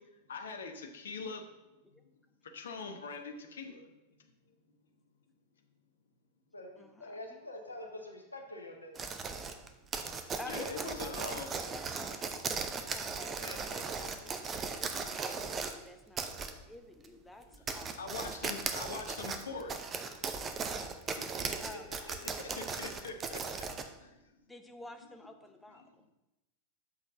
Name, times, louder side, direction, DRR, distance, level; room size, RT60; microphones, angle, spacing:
voice 1, 0.3-1.5 1.9-2.0 2.4-4.1 10.5-11.5 17.5-17.6 18.0-20.0 20.8-20.9 22.4-24.4 25.8-25.9, left 4 dB, 65° left, 5 dB, 1.1 m, -43 dB
voice 2, 6.5-9.0 13.2-14.1 21.2-21.8 22.2-22.7, left 1 dB, 80° left, 2 dB, 1.4 m, -47 dB
sound 1, 8.9-15.8 16.2-16.5 17.0-17.1 17.5-23.9, right 5 dB, 25° right, 0.8 m, -37 dB
voice 3, 10.4-12.2 12.7-18.1 18.4-18.9 21.6-22.1 24.5-26.0, left 2 dB, 5° left, 6 dB, 0.9 m, -51 dB
6.7 x 5.5 x 6.6 m, 0.99 s
figure-of-eight pair, 90°, 0 cm